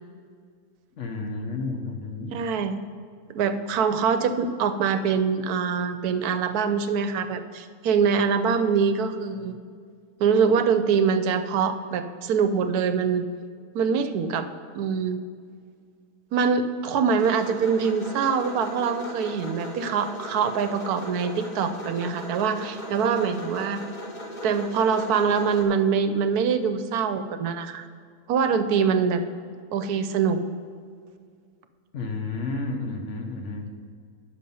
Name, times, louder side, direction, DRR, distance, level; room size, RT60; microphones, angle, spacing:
voice 1, 1.0-2.4 31.9-33.9, left 3 dB, 50° left, 3 dB, 1.1 m, -32 dB
voice 2, 2.3-2.8 3.3-9.6 10.2-13.3 13.7-14.5 14.7-15.2 16.3-23.8 24.4-27.9 28.3-29.2 29.7-30.4, right 6 dB, 70° right, 9 dB, 1.1 m, -24 dB
sound 1, 17.2-25.6, equal, 30° left, 1.1 m, -38 dB
9.9 x 6.6 x 5.4 m, 2.1 s
omnidirectional pair, 1.7 m